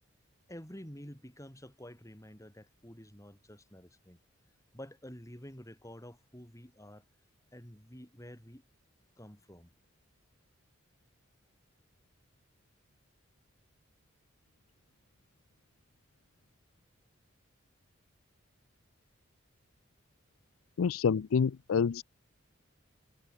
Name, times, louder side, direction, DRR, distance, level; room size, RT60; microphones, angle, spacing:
voice 1, 0.5-4.2 4.7-7.0 7.5-8.7 9.2-9.7, equal, 15° left, 5.5 m, -49 dB
voice 2, 20.8-22.0, left 6 dB, 85° left, 0.4 m, -27 dB
head